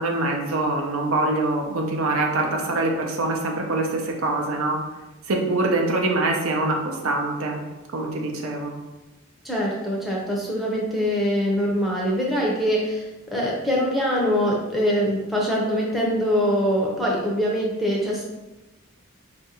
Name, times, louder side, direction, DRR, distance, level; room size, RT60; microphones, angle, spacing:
voice 1, 0.0-4.8 5.3-7.6 7.9-8.7, right 2 dB, 80° right, 1 dB, 0.6 m, -24 dB
voice 2, 9.4-13.0 13.3-18.2, equal, ahead, -4 dB, 0.5 m, -23 dB
4.3 x 2.5 x 2.8 m, 1.1 s
head